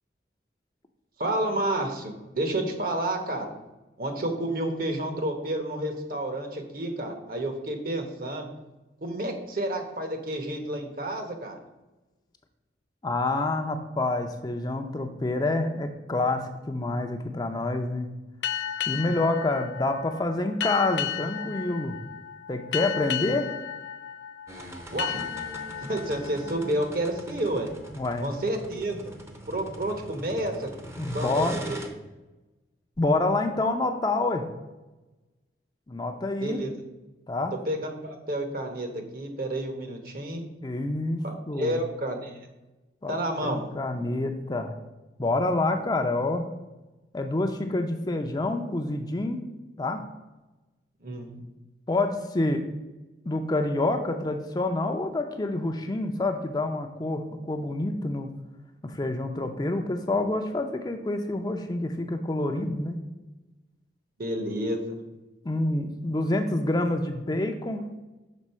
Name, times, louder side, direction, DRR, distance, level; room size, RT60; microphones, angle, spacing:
voice 1, 1.2-3.5 4.0-8.5 9.0-11.6 24.9-25.2 25.8-27.7 28.2-29.1 29.5-30.7 31.1-31.8 36.4-36.7 37.7-40.5 41.2-42.4 43.1-43.6 51.0-51.4 64.2-65.0, right 1 dB, 50° right, 5 dB, 1.0 m, -30 dB
voice 2, 13.0-18.1 18.9-22.0 22.5-23.5 28.0-28.3 31.0-31.6 33.0-34.5 35.9-36.6 37.3-37.5 40.6-41.8 43.0-44.7 45.2-46.4 47.1-49.4 49.8-50.0 51.9-52.6 53.3-58.3 58.8-63.0 65.4-67.8, left 2 dB, 20° left, 5 dB, 0.5 m, -27 dB
Seven Bells Ship Time, 18.4-27.7, left 9 dB, 85° left, 0.4 m, -34 dB
sound 1, 24.5-31.9, right 1 dB, 15° right, 0.6 m, -42 dB
6.2 x 3.9 x 5.4 m, 1.1 s
head